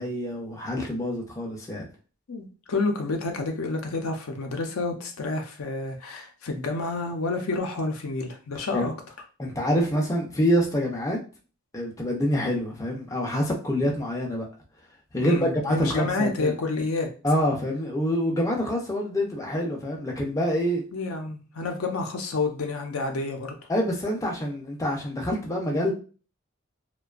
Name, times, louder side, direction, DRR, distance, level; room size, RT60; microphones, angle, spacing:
voice 1, 0.0-1.8 8.7-8.9 9.4-11.2 11.7-14.5 15.1-16.5 17.2-20.8 23.7-25.9, equal, 15° left, -1 dB, 0.4 m, -26 dB
voice 2, 2.3-8.9 15.2-17.1 20.9-23.5, left 3 dB, 70° left, 4 dB, 0.5 m, -29 dB
2.5 x 2.2 x 2.3 m, 0.36 s
head